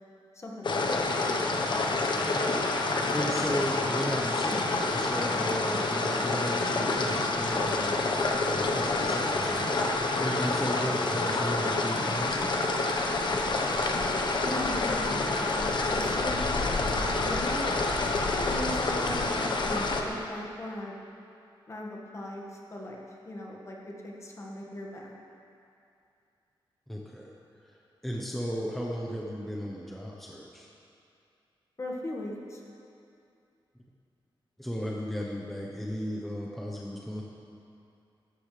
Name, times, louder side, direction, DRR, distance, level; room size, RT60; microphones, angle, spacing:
voice 1, 0.3-1.0 14.4-16.4 16.9-17.7 18.5-21.0 21.7-23.0 23.3-25.1 31.8-32.6, left 1 dB, 30° left, -2 dB, 1.8 m, -38 dB
sound 1, 0.6-20.0, left 3 dB, 55° left, 1.1 m, -28 dB
voice 2, 2.8-9.8 10.2-12.5 26.9-27.3 27.7-27.8 28.0-30.7 34.6-37.2, equal, ahead, -3 dB, 1.0 m, -35 dB
17.5 x 14.0 x 3.4 m, 2.6 s
wide cardioid pair, 170°, 9 cm